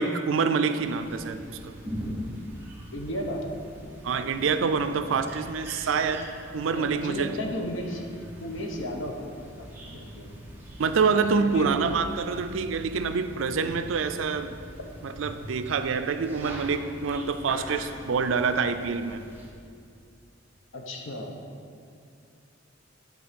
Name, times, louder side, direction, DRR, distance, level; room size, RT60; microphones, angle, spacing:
voice 1, 0.0-1.7 4.0-6.3 6.5-7.3 10.8-14.6 15.0-19.2, right 5 dB, 85° right, 10 dB, 0.4 m, -26 dB
sound 1, 0.8-19.5, equal, 10° right, 1.0 m, -42 dB
voice 2, 2.9-3.4 6.7-8.0 8.4-10.3 11.4-11.7 20.7-21.3, equal, 75° left, 2 dB, 1.0 m, -34 dB
10.5 x 3.9 x 5.2 m, 2.3 s
head